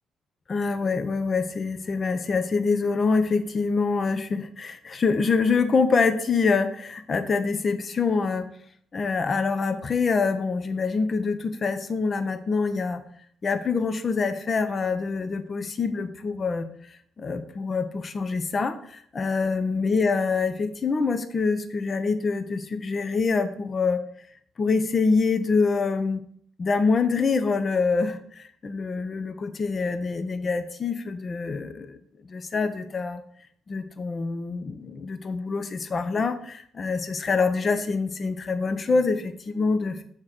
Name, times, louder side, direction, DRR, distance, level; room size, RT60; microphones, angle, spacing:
voice 1, 0.5-8.5 8.9-13.0 13.4-24.0 24.6-26.2 26.6-31.9 32.2-33.2 33.7-40.0, left 4 dB, 40° left, 10 dB, 0.7 m, -25 dB
6.5 x 3.7 x 6.3 m, 0.62 s
cardioid pair, 90°, 0 cm